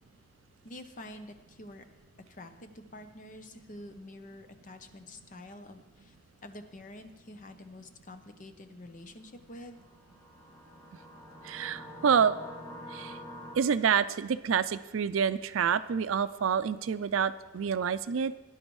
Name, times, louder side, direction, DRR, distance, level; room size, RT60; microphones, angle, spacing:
voice 1, 0.6-1.8 2.3-6.1 6.4-9.8, left 1 dB, 40° left, 7 dB, 0.8 m, -47 dB
sound 1, 9.6-13.6, equal, 15° left, 1.9 m, -46 dB
voice 2, 11.4-12.4 12.9-13.2 13.5-18.3, right 7 dB, 80° right, 14 dB, 0.4 m, -27 dB
18.0 x 10.5 x 3.2 m, 1.2 s
head